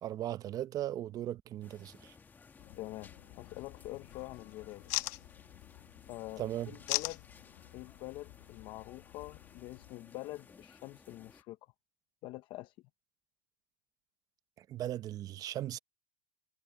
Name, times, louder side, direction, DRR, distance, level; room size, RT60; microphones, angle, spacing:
voice 1, 0.0-2.1 6.4-6.7 14.6-15.8, right 12 dB, 30° right, 0.7 m, -38 dB
sound 1, 1.6-11.4, left 5 dB, 15° left, 1.8 m, -59 dB
sound 2, 2.6-9.9, left 21 dB, 60° left, 1.1 m, -43 dB
voice 2, 2.8-3.1 3.4-4.8 6.1-7.2 7.7-11.7 12.2-12.8, left 18 dB, 45° left, 0.8 m, -45 dB
supercardioid pair, 145°, 11 cm